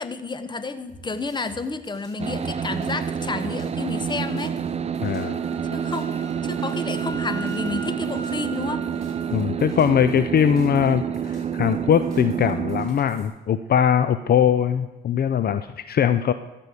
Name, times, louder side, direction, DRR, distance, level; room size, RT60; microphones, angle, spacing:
voice 1, 0.0-4.6 5.7-6.1 6.4-8.8, left 3 dB, 25° left, 11 dB, 1.0 m, -30 dB
sound 1, 0.9-13.3, equal, 5° left, 5.2 m, -48 dB
sound 2, 2.2-12.9, right 7 dB, 30° right, 0.6 m, -28 dB
voice 2, 5.0-5.4 9.3-16.3, left 8 dB, 50° left, 11 dB, 0.6 m, -21 dB
Wind instrument woodwind instrument, 5.2-9.3, right 3 dB, 90° right, 1.0 m, -39 dB
14.0 x 5.4 x 8.3 m, 1.1 s
cardioid pair, 90°, 20 cm